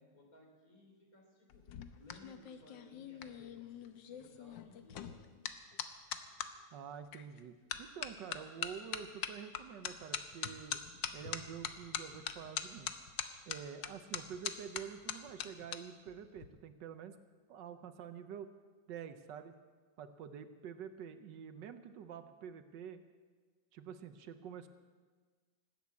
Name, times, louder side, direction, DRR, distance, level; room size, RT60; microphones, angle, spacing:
voice 1, 0.0-1.6 2.0-5.3, left 2 dB, 50° left, 1 dB, 3.7 m, -61 dB
sound 1, 1.5-6.5 7.1-7.4 7.7-15.8 16.1-16.5, left 9 dB, 85° left, 1.5 m, -42 dB
voice 2, 6.7-10.8 11.1-12.9 13.5-17.2 17.5-18.5 18.9-19.5 20.0-23.0 23.7-24.7, right 8 dB, 75° right, 10 dB, 1.4 m, -48 dB
19.0 x 8.5 x 8.3 m, 1.4 s
omnidirectional pair, 1.9 m